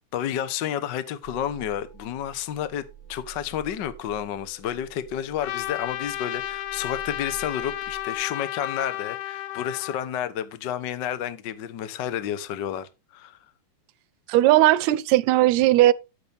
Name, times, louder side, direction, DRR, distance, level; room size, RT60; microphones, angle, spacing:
voice 1, 0.1-13.4, left 10 dB, 70° left, 1.0 m, -31 dB
sound 1, 1.2-8.3, right 9 dB, 30° left, 1.0 m, -48 dB
Trumpet, 5.4-10.1, left 13 dB, 90° left, 2.3 m, -33 dB
voice 2, 14.3-15.9, right 15 dB, 80° right, 1.8 m, -18 dB
11.5 x 8.3 x 3.4 m
omnidirectional pair, 3.4 m